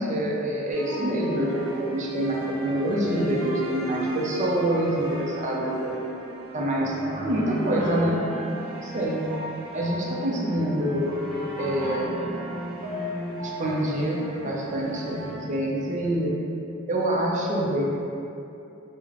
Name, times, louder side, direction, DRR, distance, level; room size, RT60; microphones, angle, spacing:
voice 1, 0.0-6.0 6.5-8.3 8.8-9.3 9.7-11.2 11.6-12.1 13.4-16.3 16.9-17.8, right 1 dB, 35° right, -2 dB, 0.4 m, -26 dB
sound 1, 0.7-16.2, equal, 80° right, 0.9 m, -35 dB
3.6 x 2.1 x 3.1 m, 2.8 s
head